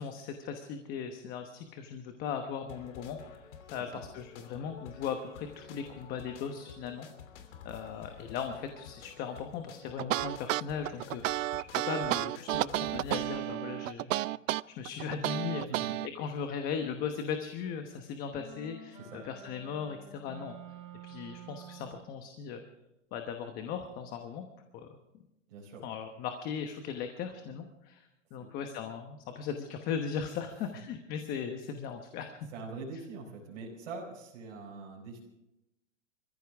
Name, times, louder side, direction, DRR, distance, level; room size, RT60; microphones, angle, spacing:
voice 1, 0.0-7.1 7.3-11.5 11.7-20.6 21.0-22.6 23.1-24.5 24.7-24.9 25.8-32.5, left 7 dB, 25° left, 6 dB, 1.1 m, -38 dB
sound 1, 2.7-13.4, left 7 dB, 65° left, 3.0 m, -51 dB
sound 2, 10.0-16.1, right 15 dB, 85° right, 0.5 m, -31 dB
sound 3, 18.3-22.1, right 5 dB, 15° right, 3.4 m, -49 dB
voice 2, 25.5-25.8 28.4-28.5 32.5-35.2, right 4 dB, 60° right, -4 dB, 4.7 m, -43 dB
26.5 x 15.0 x 3.5 m, 0.88 s
supercardioid pair, 160°, 38 cm